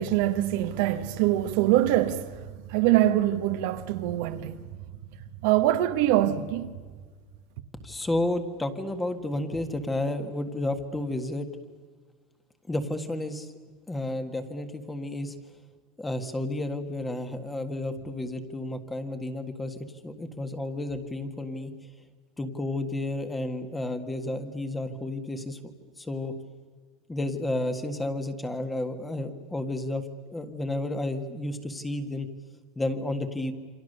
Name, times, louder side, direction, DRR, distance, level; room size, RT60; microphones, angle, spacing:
voice 1, 0.0-2.2 2.7-4.6 5.4-6.7, right 13 dB, 65° right, 1.5 m, -24 dB
voice 2, 7.8-11.5 12.7-13.5 13.9-15.3 16.0-21.7 22.4-25.6 26.0-26.3 27.1-30.0 30.3-32.3 32.7-33.5, left 1 dB, 10° left, 1.7 m, -31 dB
28.5 x 25.5 x 6.8 m
supercardioid pair, 165°, 0 cm